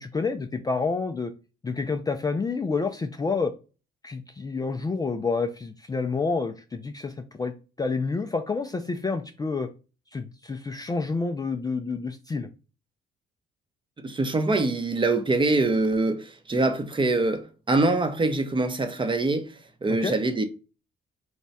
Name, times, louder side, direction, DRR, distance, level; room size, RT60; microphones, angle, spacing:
voice 1, 0.0-1.3 1.6-3.5 4.0-9.7 10.1-12.5 19.9-20.1, left 4 dB, 20° left, 0.3 m, -29 dB
voice 2, 14.0-19.5 19.8-20.4, right 2 dB, 25° right, 0.7 m, -24 dB
3.2 x 2.2 x 4.0 m
cardioid pair, 90°, 20 cm